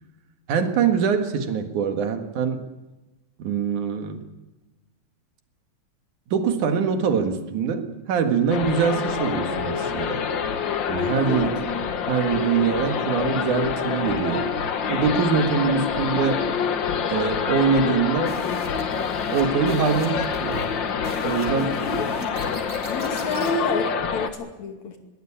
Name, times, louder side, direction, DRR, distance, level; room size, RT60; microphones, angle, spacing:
voice 1, 0.5-2.6 3.4-4.2 6.3-10.2 10.9-11.5 12.1-14.5 14.9-16.4 17.1-18.4 19.3-20.7 21.2-21.7, right 6 dB, 90° right, 7 dB, 3.2 m, -23 dB
sound 1, 8.5-24.3, left 6 dB, 50° left, 1.6 m, -26 dB
sound 2, 18.3-23.6, right 1 dB, 20° right, 4.6 m, -39 dB
voice 2, 21.5-22.6 22.9-25.0, left 3 dB, 70° left, 4 dB, 3.7 m, -30 dB
23.0 x 17.5 x 8.7 m, 1.1 s
omnidirectional pair, 3.4 m